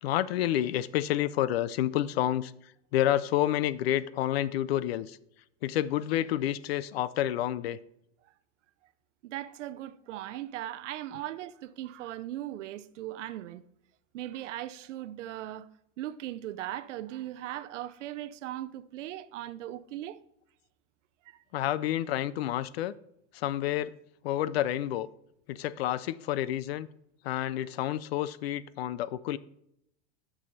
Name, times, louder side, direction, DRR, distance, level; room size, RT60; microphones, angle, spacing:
voice 1, 0.0-5.2 5.6-7.8 21.5-22.9 23.3-24.0 24.2-25.1 25.5-26.9 27.2-29.4, left 12 dB, 60° left, 0.4 m, -29 dB
voice 2, 9.2-13.6 14.1-15.7 16.0-20.2 21.3-21.4, right 13 dB, 90° right, 0.6 m, -38 dB
7.5 x 6.3 x 4.0 m
supercardioid pair, 175°, 36 cm